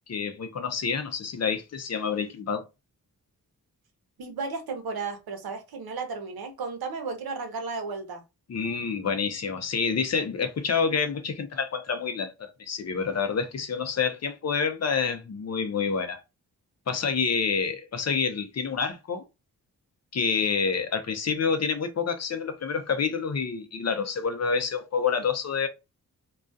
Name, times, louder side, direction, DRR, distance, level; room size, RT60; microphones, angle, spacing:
voice 1, 0.1-2.7 8.5-16.2 16.9-19.2 20.1-25.7, left 5 dB, 45° left, 0.6 m, -28 dB
voice 2, 4.2-8.2, right 4 dB, 85° right, 0.8 m, -34 dB
2.3 x 2.2 x 2.5 m
wide cardioid pair, 100°, 36 cm